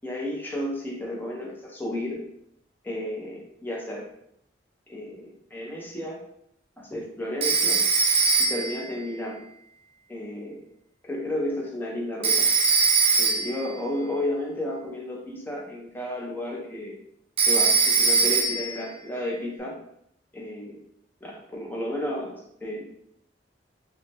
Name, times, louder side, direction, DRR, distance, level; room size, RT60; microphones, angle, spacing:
voice 1, 0.0-2.2 2.8-4.1 4.9-6.2 6.8-7.8 8.4-9.4 10.1-10.6 11.0-12.5 13.2-17.0 17.5-19.8 20.3-20.8 21.2-22.8, left 1 dB, 10° left, -3 dB, 0.6 m, -32 dB
Telephone, 7.4-8.8 12.2-13.6 17.4-18.8, right 4 dB, 30° right, 0.4 m, -21 dB
2.7 x 2.1 x 3.2 m, 0.72 s
head